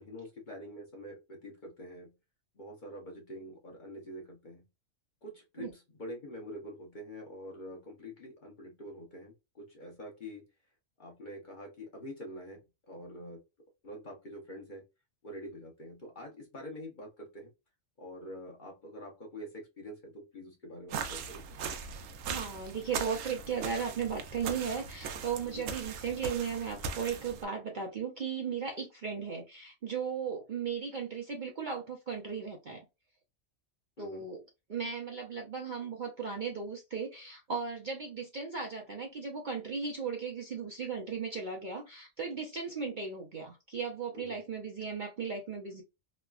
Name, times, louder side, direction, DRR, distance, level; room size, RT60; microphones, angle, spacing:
voice 1, 0.0-2.1 2.5-4.7 5.2-10.4 11.0-12.6 12.9-13.4 13.8-14.8 15.2-17.5 18.0-21.4 25.4-25.6 34.0-34.3 44.1-44.4, equal, 40° left, 0 dB, 0.9 m, -46 dB
sound 1, 20.9-27.4, right 6 dB, 75° right, 0.9 m, -39 dB
voice 2, 22.3-32.8 34.0-34.4 34.7-45.8, right 6 dB, 50° right, 0 dB, 0.6 m, -36 dB
3.1 x 2.1 x 2.3 m, 0.25 s
omnidirectional pair, 1.4 m